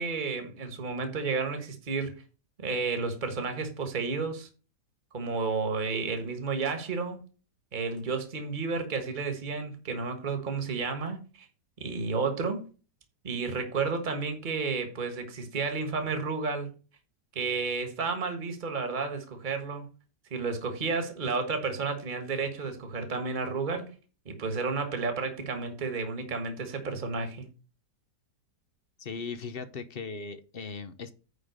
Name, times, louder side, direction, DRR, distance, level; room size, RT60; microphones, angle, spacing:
voice 1, 0.0-2.2 2.6-4.5 5.1-7.2 7.7-11.5 11.8-12.7 13.2-16.7 17.3-19.8 20.3-23.9 24.2-27.5, right 4 dB, 30° right, 1.5 m, -31 dB
voice 2, 29.0-31.1, left 5 dB, 50° left, 0.7 m, -38 dB
9.6 x 3.7 x 6.4 m
omnidirectional pair, 1.8 m